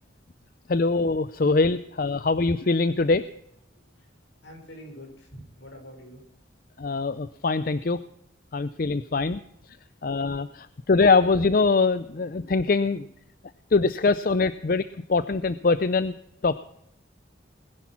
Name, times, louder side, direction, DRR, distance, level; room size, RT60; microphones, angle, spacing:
voice 1, 0.7-3.3 6.8-8.0 8.5-9.4 10.0-13.1 13.7-14.8 15.1-16.1 16.4-16.6, left 3 dB, 45° left, 14 dB, 0.5 m, -23 dB
voice 2, 3.8-4.1 4.4-6.2, equal, 75° left, 2 dB, 5.8 m, -46 dB
20.5 x 10.5 x 5.9 m, 0.76 s
head